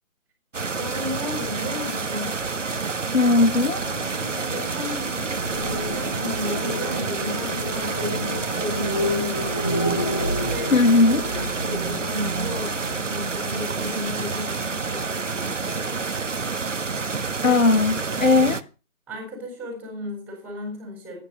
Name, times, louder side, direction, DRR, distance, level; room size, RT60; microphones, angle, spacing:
sound 1, 0.5-18.6, right 4 dB, 60° right, 1.4 m, -29 dB
voice 1, 0.7-2.3 4.5-9.8 10.4-16.3 17.4-17.6 18.2-18.4 19.1-21.2, left 2 dB, 5° right, 4.7 m, -34 dB
voice 2, 3.1-3.8 10.7-11.2 17.4-18.6, left 3 dB, 65° left, 1.6 m, -18 dB
sound 2, 3.2-14.2, equal, 15° left, 0.8 m, -31 dB
17.0 x 10.0 x 5.6 m
figure-of-eight pair, 155°, 42 cm